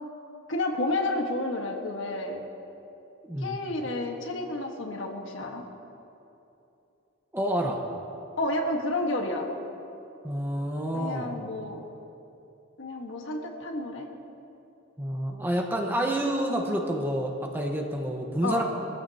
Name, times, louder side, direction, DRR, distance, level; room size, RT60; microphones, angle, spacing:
voice 1, 0.5-2.4 3.4-5.6 8.4-9.5 10.9-11.8 12.8-14.1 18.4-18.6, left 2 dB, 70° left, 2 dB, 1.5 m, -30 dB
voice 2, 3.2-3.6 7.3-7.8 10.2-11.3 15.0-18.6, right 1 dB, 10° right, 0 dB, 1.2 m, -28 dB
22.5 x 14.5 x 2.9 m, 2.8 s
head